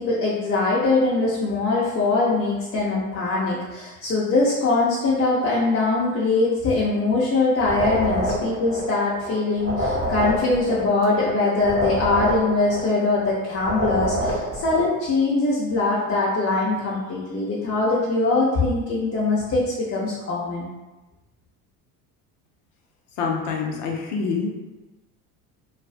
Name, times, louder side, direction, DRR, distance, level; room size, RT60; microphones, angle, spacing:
voice 1, 0.0-20.7, left 3 dB, 30° left, -7 dB, 0.6 m, -22 dB
sound 1, 7.6-9.3 9.6-13.3 13.6-14.9, equal, 25° right, 0.7 m, -27 dB
voice 2, 23.2-24.5, left 5 dB, 70° left, 0 dB, 0.7 m, -26 dB
2.4 x 2.2 x 2.4 m, 1.1 s
hypercardioid pair, 70°, 46 cm